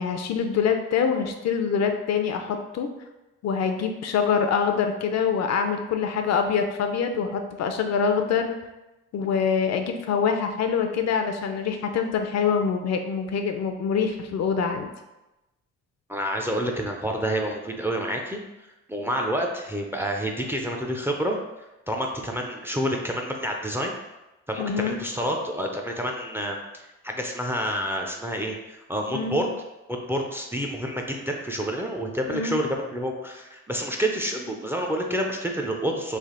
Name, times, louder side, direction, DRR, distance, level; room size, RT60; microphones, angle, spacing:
voice 1, 0.0-2.9 3.4-8.6 9.1-14.9 24.6-25.0 29.1-29.4 32.3-32.6, left 6 dB, 60° left, 6 dB, 0.5 m, -25 dB
voice 2, 16.1-18.4 18.9-23.9 24.5-29.5 29.9-36.2, equal, 10° right, 1 dB, 0.4 m, -28 dB
3.3 x 2.4 x 3.7 m, 1.0 s
cardioid pair, 90°, 30 cm